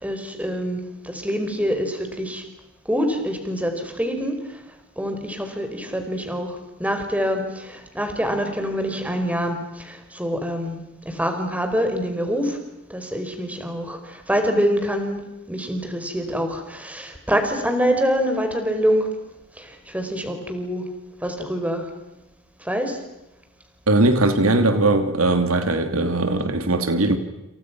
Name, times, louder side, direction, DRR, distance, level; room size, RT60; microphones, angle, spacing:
voice 1, 0.0-2.4 2.8-4.6 5.0-12.6 12.9-19.1 19.6-20.8 21.2-21.8 22.6-23.0, equal, 5° right, 4.7 m, -25 dB
voice 2, 23.9-27.2, right 2 dB, 80° right, 2.7 m, -19 dB
29.5 x 28.5 x 6.1 m
head